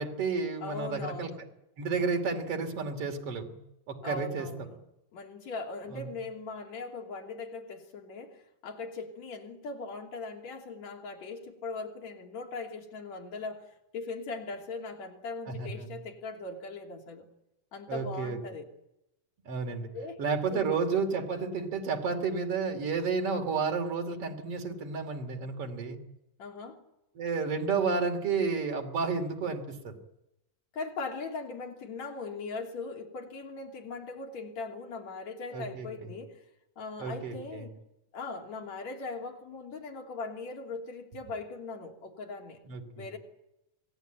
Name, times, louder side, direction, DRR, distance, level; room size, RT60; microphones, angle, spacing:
voice 1, 0.0-1.3 1.8-3.6 3.9-4.5 5.9-6.1 15.5-15.9 17.9-18.4 19.5-19.9 20.2-26.0 27.2-29.9 35.5-36.1 37.0-37.7 42.7-43.1, right 5 dB, 50° right, 5 dB, 3.7 m, -31 dB
voice 2, 0.6-1.4 4.0-4.8 5.1-17.3 17.7-18.7 19.9-20.2 20.5-20.7 26.4-26.8 30.7-36.4 36.8-37.7 38.1-42.6 43.0-43.2, left 3 dB, 65° left, 1 dB, 4.2 m, -40 dB
27.0 x 18.5 x 9.2 m, 0.88 s
omnidirectional pair, 3.4 m